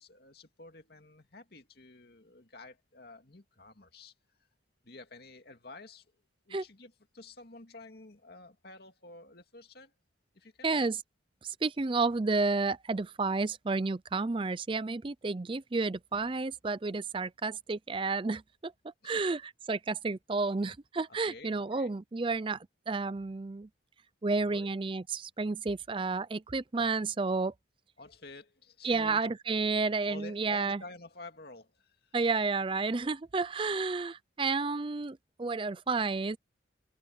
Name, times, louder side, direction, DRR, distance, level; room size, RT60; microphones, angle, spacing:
voice 1, 0.0-4.1 4.8-6.1 6.5-9.9 10.3-10.7 19.0-19.3 21.1-21.9 24.4-24.7 28.0-29.3 30.0-32.2, left 2 dB, 55° left, 2.3 m, -50 dB
voice 2, 10.6-11.0 11.4-18.7 19.0-23.7 24.2-27.5 28.8-30.8 32.1-36.4, right 3 dB, 25° right, 0.4 m, -31 dB
open air
head